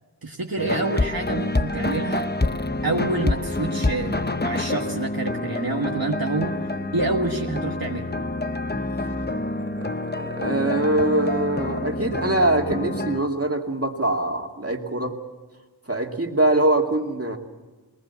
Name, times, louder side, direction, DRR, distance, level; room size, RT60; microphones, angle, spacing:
voice 1, 0.2-2.3 2.8-8.1, right 2 dB, 60° right, 1 dB, 1.5 m, -28 dB
sound 1, 0.6-13.2, left 2 dB, 25° left, 0.9 m, -27 dB
voice 2, 9.6-15.2 15.9-17.4, right 1 dB, 35° right, 2 dB, 2.4 m, -23 dB
21.5 x 20.0 x 8.3 m, 1.2 s
wide cardioid pair, 45°, 39 cm